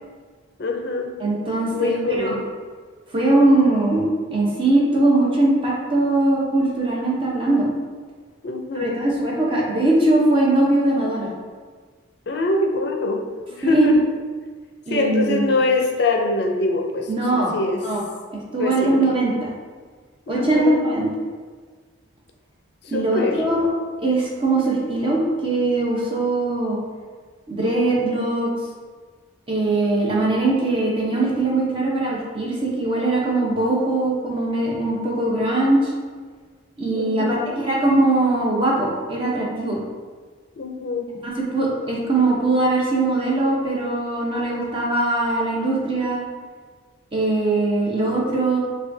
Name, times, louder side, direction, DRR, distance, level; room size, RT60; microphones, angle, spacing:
voice 1, 0.6-1.1 1.7-2.4 8.4-9.1 12.3-13.2 13.5-14.0 14.9-17.8 18.6-19.0 20.3-20.8 22.9-23.4 37.0-37.5 40.6-41.1, left 2 dB, 55° left, 3 dB, 0.4 m, -23 dB
voice 2, 1.2-2.4 3.1-7.7 8.7-11.3 13.6-13.9 14.9-15.6 17.1-17.5 17.8-18.0 18.3-19.3 20.3-21.1 22.9-23.7 24.0-26.8 27.5-28.5 29.5-35.9 36.8-39.8 41.2-46.2 47.1-48.6, right 2 dB, 25° right, -4 dB, 0.7 m, -21 dB
5.7 x 2.3 x 2.6 m, 1.5 s
head